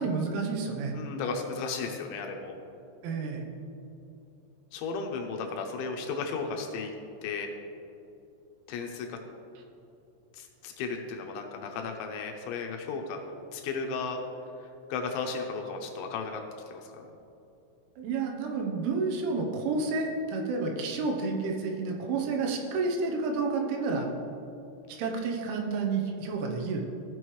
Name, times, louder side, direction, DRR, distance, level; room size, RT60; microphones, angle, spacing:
voice 1, 0.0-1.0 3.0-3.4 18.0-24.1 24.9-26.8, right 4 dB, 80° right, 2 dB, 3.3 m, -30 dB
voice 2, 0.9-2.6 4.7-6.9 7.2-7.5 8.7-9.2 10.3-13.2 13.5-14.2 14.6-16.4 16.7-17.1 23.9-24.1, left 4 dB, 80° left, 2 dB, 2.9 m, -35 dB
16.0 x 6.3 x 3.1 m, 2.7 s
omnidirectional pair, 5.6 m